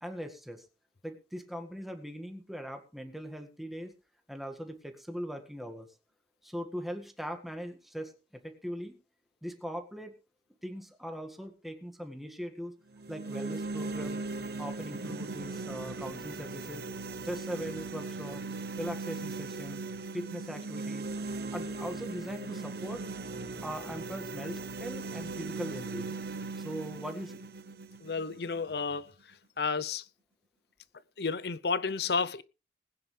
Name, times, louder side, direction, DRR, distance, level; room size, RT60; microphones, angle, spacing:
voice 1, 0.0-0.7 1.0-3.9 4.3-5.9 6.4-8.1 8.4-8.9 9.4-10.1 10.6-12.7 13.1-14.2 14.6-16.8 17.2-18.4 18.8-19.8 20.1-21.1 21.5-23.0 23.6-26.2 26.6-27.4, equal, ahead, 1.8 m, -40 dB
sound 1, 12.9-29.0, right 3 dB, 60° right, 1.0 m, -39 dB
voice 2, 28.0-29.1 29.6-30.0 31.2-32.4, left 5 dB, 65° left, 0.7 m, -31 dB
20.0 x 9.7 x 3.3 m
head